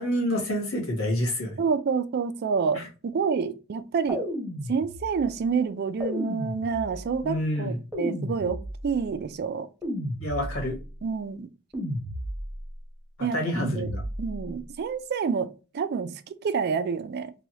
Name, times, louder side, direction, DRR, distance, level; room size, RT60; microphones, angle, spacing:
voice 1, 0.0-1.6 2.7-2.9 7.2-7.8 10.2-10.8 13.2-14.0, equal, 90° left, 1.3 m, -28 dB
voice 2, 1.6-4.2 4.7-8.6 8.8-9.7 11.0-11.5 13.2-13.9 14.2-17.3, right 5 dB, 50° right, 0.3 m, -28 dB
sound 1, 4.1-5.3 6.0-7.2 7.9-9.0 9.8-10.8 11.7-12.7 13.5-14.4, equal, 5° right, 0.9 m, -33 dB
3.0 x 2.3 x 2.8 m
head